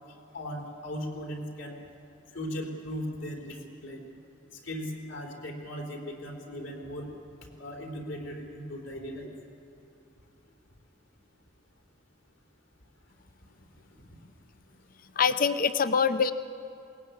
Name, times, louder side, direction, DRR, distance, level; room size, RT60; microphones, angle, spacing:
voice 1, 0.3-1.8 2.3-4.0 4.6-7.1 7.6-9.3 14.1-14.2, equal, 70° left, 1 dB, 3.8 m, -38 dB
voice 2, 15.2-16.3, left 6 dB, 45° left, 12 dB, 0.7 m, -24 dB
21.5 x 18.5 x 9.3 m, 2.9 s
head